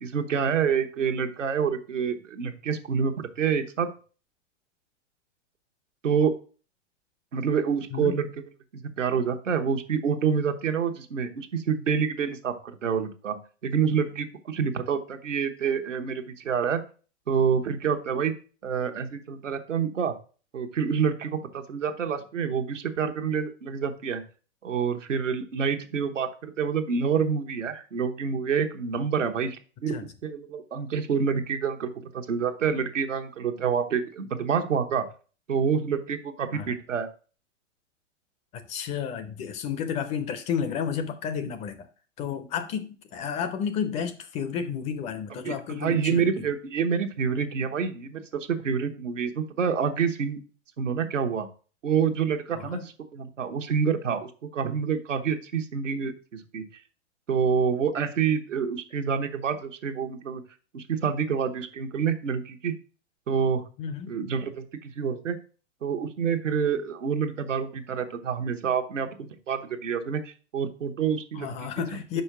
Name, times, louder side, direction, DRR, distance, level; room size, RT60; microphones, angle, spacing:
voice 1, 0.0-3.9 6.0-6.3 7.3-8.3 8.7-13.4 13.6-16.8 17.3-18.3 18.6-20.2 20.5-24.2 24.6-35.0 35.5-37.1 45.4-50.4 50.8-51.5 51.8-56.6 57.3-60.4 60.7-62.7 63.3-63.6 64.1-65.4 65.8-71.5 72.1-72.2, right 6 dB, 85° right, 1.1 m, -27 dB
voice 2, 38.7-41.9 42.2-46.2 52.5-52.8 63.8-64.2 71.3-72.2, left 7 dB, 20° left, 0.4 m, -31 dB
5.4 x 4.6 x 5.9 m
hypercardioid pair, 120°, 37 cm